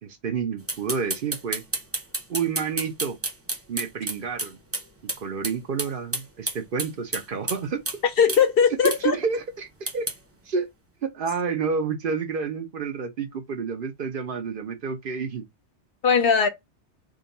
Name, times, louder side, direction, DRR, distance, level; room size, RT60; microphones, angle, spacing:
voice 1, 0.0-1.6 2.3-3.2 3.7-4.6 5.2-8.0 8.8-10.1 10.5-10.7 11.0-15.4, right 5 dB, 55° right, 0.8 m, -29 dB
sound 1, 0.7-4.8 5.1-5.2 5.4-5.5 5.8-7.6 7.9-8.0 8.3-8.4 8.8-9.0 9.9-10.2, right 2 dB, 15° right, 0.7 m, -29 dB
voice 2, 8.2-9.2 16.0-16.5, left 6 dB, 60° left, 0.8 m, -19 dB
3.7 x 2.2 x 3.9 m
omnidirectional pair, 1.2 m